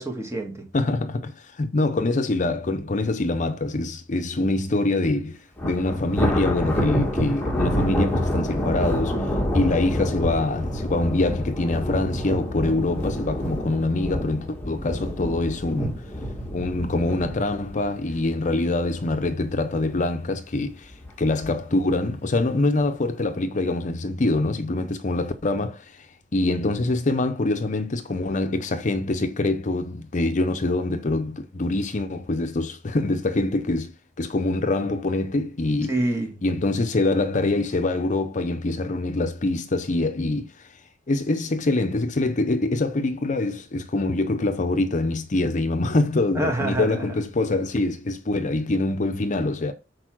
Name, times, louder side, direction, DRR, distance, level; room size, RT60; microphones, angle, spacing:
voice 1, 0.0-0.7 35.9-36.4 46.3-47.2, right 1 dB, 15° right, 1.6 m, -27 dB
voice 2, 0.7-16.0 16.5-35.9 36.4-40.7 41.1-49.7, left 2 dB, 45° left, 0.6 m, -25 dB
Thunder, 5.6-18.9 19.2-19.5 19.9-20.0 20.9-21.5, equal, 10° left, 2.1 m, -27 dB
6.6 x 4.5 x 6.1 m
head